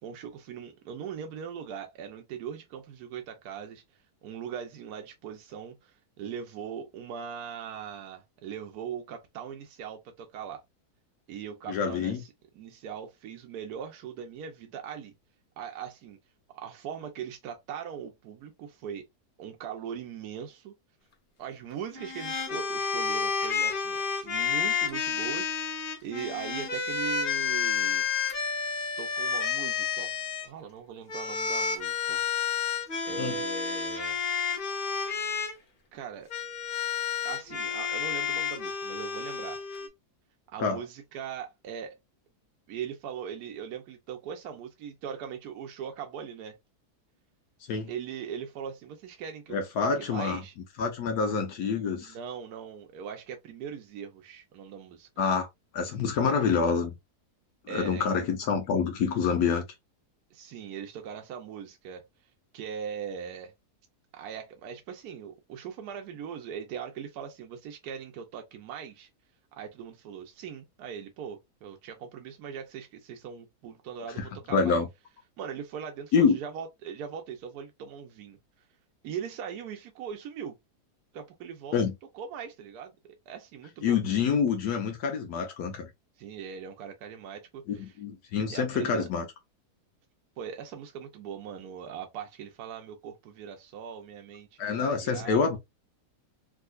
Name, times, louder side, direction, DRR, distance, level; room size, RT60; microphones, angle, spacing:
voice 1, 0.0-10.6 11.3-12.3 12.5-15.1 15.6-16.2 16.5-19.1 19.4-20.7 21.4-28.1 29.0-30.1 30.4-32.2 33.0-34.2 35.9-36.3 37.2-39.6 40.5-42.0 42.7-46.6 47.9-50.5 52.0-55.1 57.7-58.0 60.3-62.0 62.5-63.5 64.1-69.1 69.6-74.8 75.4-78.4 79.0-80.6 81.1-81.8 82.1-84.0 86.2-87.9 88.5-89.1 90.4-95.4, right 7 dB, 80° right, 1.1 m, -40 dB
voice 2, 11.7-12.2 33.2-33.4 40.6-40.8 47.7-47.9 49.5-50.4 50.8-52.2 55.2-55.5 55.7-56.9 57.7-59.6 74.2-74.9 76.1-76.4 81.7-81.9 83.8-85.9 87.7-89.2 94.6-95.6, left 5 dB, 75° left, 1.2 m, -27 dB
sound 1, 21.9-30.5 31.1-35.5 36.3-39.9, left 6 dB, 45° left, 0.7 m, -30 dB
3.6 x 2.7 x 2.3 m
omnidirectional pair, 1.7 m